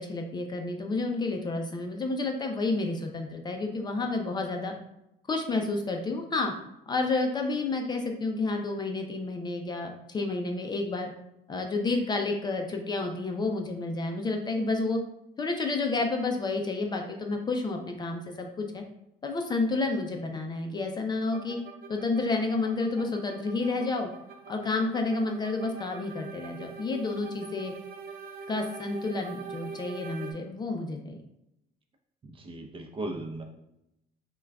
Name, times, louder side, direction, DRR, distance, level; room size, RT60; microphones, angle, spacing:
voice 1, 0.0-4.7 5.3-6.5 6.9-11.1 11.5-15.0 15.4-18.8 19.2-21.6 21.9-24.1 24.5-27.7 28.5-31.1, left 3 dB, 25° left, 3 dB, 0.5 m, -30 dB
sound 1, 21.3-30.3, right 5 dB, 65° right, 0.6 m, -43 dB
voice 2, 32.2-33.4, right 2 dB, 30° right, 3 dB, 0.7 m, -37 dB
5.7 x 2.3 x 2.3 m, 0.85 s
cardioid pair, 105°, 17 cm